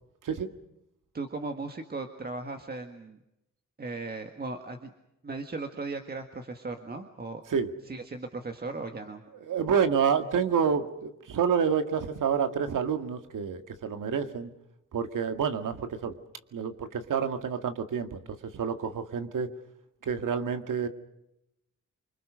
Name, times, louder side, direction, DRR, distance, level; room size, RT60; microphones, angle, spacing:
voice 1, 1.1-3.2 3.8-4.9 5.2-7.4 7.9-9.2, right 3 dB, 30° right, 5 dB, 1.8 m, -37 dB
voice 2, 9.4-14.5 14.9-16.1 16.5-19.5 20.0-20.9, right 7 dB, 85° right, 8 dB, 2.1 m, -28 dB
28.0 x 25.0 x 6.4 m, 0.85 s
wide cardioid pair, 160°, 31 cm